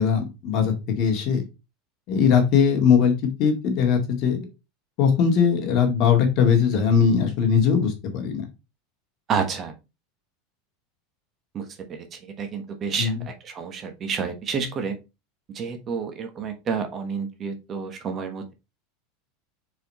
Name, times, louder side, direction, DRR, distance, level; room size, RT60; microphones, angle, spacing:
voice 1, 0.0-1.4 2.1-4.5 5.0-8.4 13.0-13.2, left 7 dB, 45° left, 4 dB, 2.0 m, -20 dB
voice 2, 9.3-9.7 11.5-15.0 15.5-18.5, right 6 dB, 30° right, 6 dB, 1.2 m, -30 dB
4.8 x 4.7 x 4.2 m, 0.26 s
supercardioid pair, 150°, 0 cm